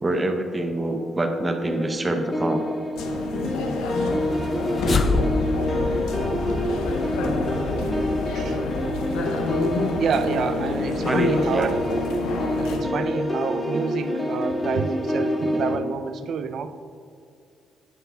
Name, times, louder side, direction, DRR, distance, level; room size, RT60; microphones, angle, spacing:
voice 1, 0.0-2.7 11.0-11.7, right 2 dB, 20° right, 5 dB, 0.7 m, -25 dB
sound 1, 1.6-15.8, left 1 dB, 15° left, 1.3 m, -27 dB
sound 2, 3.0-12.8, left 3 dB, 90° left, 0.6 m, -29 dB
sound 3, 4.2-9.6, left 3 dB, 40° left, 0.5 m, -29 dB
voice 2, 10.0-11.8 12.6-16.7, right 6 dB, 65° right, 10 dB, 0.4 m, -28 dB
9.6 x 7.7 x 2.3 m, 2.4 s
cardioid pair, 90°, 0 cm